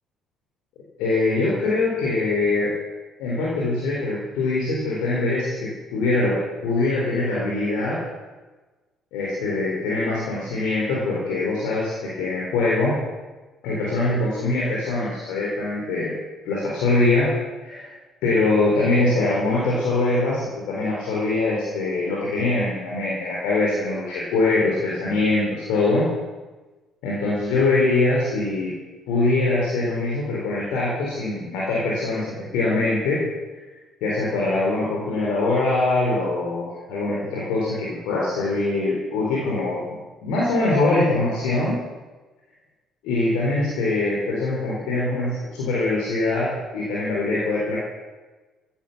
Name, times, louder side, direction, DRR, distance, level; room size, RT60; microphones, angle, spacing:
voice 1, 1.0-2.7 3.2-8.0 9.1-13.0 13.6-16.1 16.4-17.3 17.6-17.9 18.2-26.1 27.0-28.8 29.1-33.2 34.0-39.8 40.2-41.8 43.0-47.8, left 2 dB, 70° left, -5 dB, 4.1 m, -23 dB
15.5 x 10.5 x 7.4 m, 1.2 s
figure-of-eight pair, 50°, 0 cm